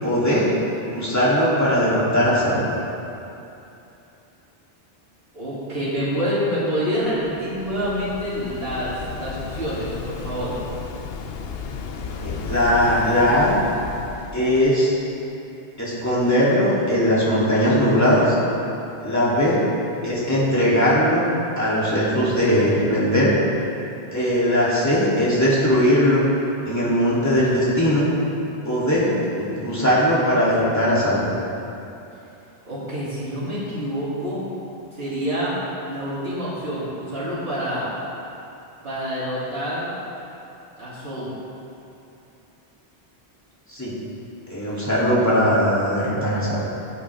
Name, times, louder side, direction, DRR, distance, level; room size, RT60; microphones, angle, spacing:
voice 1, 0.0-0.5 0.9-2.7 12.2-13.5 14.3-14.9 15.8-18.3 19.0-19.6 20.0-21.3 21.6-23.3 24.1-26.2 26.6-28.0 28.6-29.1 29.4-31.3 43.7-43.9 44.5-46.6, equal, 15° left, -9 dB, 3.1 m, -19 dB
voice 2, 5.3-10.5 32.7-34.4 34.9-35.6 35.9-37.9 38.8-39.9 40.8-41.3, equal, 65° right, -11 dB, 3.4 m, -27 dB
Waves surf, 7.0-14.7, left 5 dB, 70° left, 0.9 m, -34 dB
16.0 x 8.5 x 3.6 m, 2.8 s
omnidirectional pair, 1.1 m